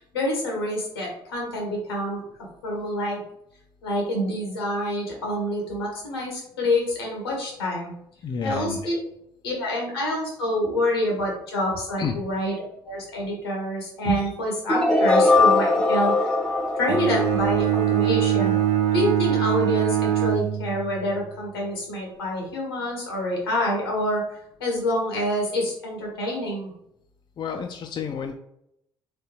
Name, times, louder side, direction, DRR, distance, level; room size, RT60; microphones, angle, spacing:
voice 1, 0.1-2.2 2.6-3.2 3.8-7.9 8.4-9.0 9.4-12.6 12.8-16.2 16.7-18.6 18.9-24.2 24.6-26.7, left 1 dB, 80° left, -1 dB, 1.0 m, -27 dB
voice 2, 8.2-8.9 12.0-12.1 27.4-28.3, left 6 dB, 35° left, 4 dB, 0.5 m, -30 dB
sound 1, 14.7-18.6, left 3 dB, 5° left, 0.7 m, -21 dB
Bowed string instrument, 16.9-21.1, right 11 dB, 65° right, 0.4 m, -23 dB
3.6 x 3.3 x 2.9 m, 0.76 s
figure-of-eight pair, 50°, 12 cm